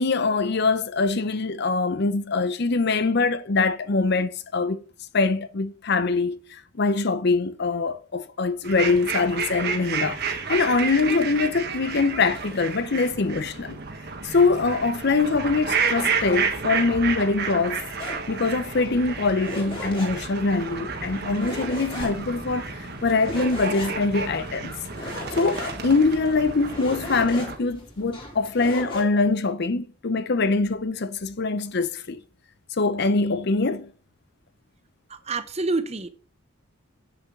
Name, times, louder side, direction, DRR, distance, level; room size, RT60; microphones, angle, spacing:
voice 1, 0.0-4.8 5.1-13.8 14.2-17.8 18.3-24.7 25.0-25.1 25.4-32.2 32.8-33.9, left 3 dB, 50° left, 0.6 m, -23 dB
sound 1, 8.6-27.6, right 5 dB, 50° right, 1.4 m, -31 dB
sound 2, 18.0-29.0, left 1 dB, 25° left, 3.2 m, -38 dB
voice 2, 35.1-36.1, right 3 dB, 30° right, 0.7 m, -27 dB
8.2 x 6.8 x 6.0 m
head